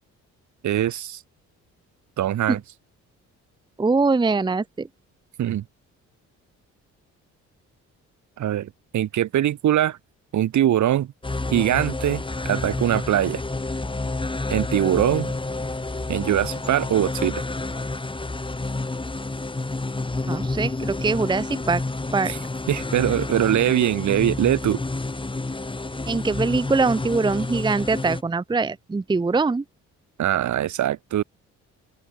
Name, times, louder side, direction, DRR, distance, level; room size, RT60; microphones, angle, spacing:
voice 1, 0.6-1.2 2.2-2.6 5.4-5.6 8.4-10.0 10.3-11.1 11.5-13.4 14.5-15.3 16.1-17.4 22.3-22.4 22.7-24.8 30.2-31.2, right 11 dB, 70° right, 3.6 m, -22 dB
voice 2, 3.8-4.9 20.3-21.8 22.1-22.3 26.1-29.6, right 4 dB, 15° right, 0.7 m, -23 dB
sound 1, 11.2-28.2, left 2 dB, 15° left, 3.8 m, -29 dB
open air
cardioid pair, 90°, 30 cm